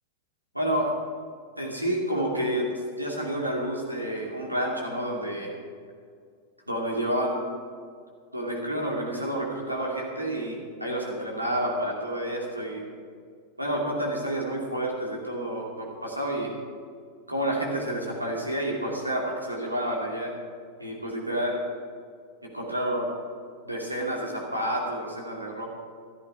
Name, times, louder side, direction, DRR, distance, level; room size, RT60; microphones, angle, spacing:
voice 1, 0.5-1.0 1.6-2.7 3.0-5.5 6.7-7.4 8.3-12.8 13.6-16.5 17.3-20.3 20.8-21.6 22.4-23.1 23.6-25.7, right 1 dB, 85° right, -1 dB, 2.8 m, -29 dB
14.5 x 13.0 x 4.9 m, 2.2 s
figure-of-eight pair, 90°, 0 cm